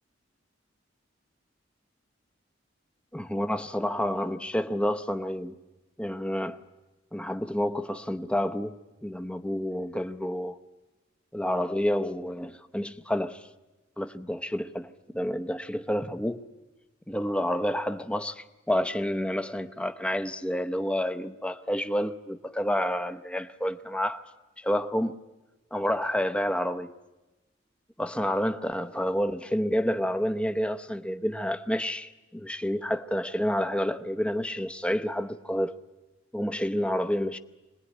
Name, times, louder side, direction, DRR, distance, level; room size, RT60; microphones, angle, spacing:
voice 1, 3.1-5.6 6.0-6.6 7.1-10.6 11.3-13.5 14.0-16.5 17.1-24.2 24.6-25.2 25.7-26.9 28.0-35.7 36.3-37.4, equal, 5° left, 0.7 m, -29 dB
24.5 x 19.5 x 9.9 m
head